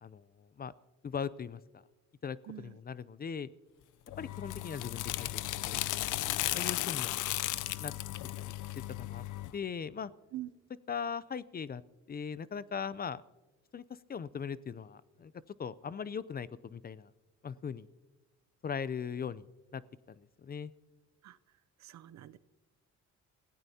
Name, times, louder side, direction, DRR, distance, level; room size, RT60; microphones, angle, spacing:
voice 1, 0.0-0.7 1.0-1.8 2.2-3.5 4.2-6.0 6.5-7.2 7.8-7.9 8.5-8.6 8.9-9.2 9.5-10.1 10.9-11.8 12.1-13.2 13.7-13.8 14.1-15.3 15.6-17.1 17.4-17.9 18.6-19.5 19.7-19.8 20.1-20.7, left 6 dB, 30° left, 18 dB, 0.5 m, -39 dB
voice 2, 2.5-2.8 10.3-10.5 21.2-21.4 21.8-22.4, right 14 dB, 65° right, 15 dB, 0.6 m, -44 dB
sound 1, 4.1-9.5, left 15 dB, 80° left, 0.6 m, -35 dB
28.0 x 16.0 x 2.8 m, 1.1 s
cardioid pair, 90°, 30 cm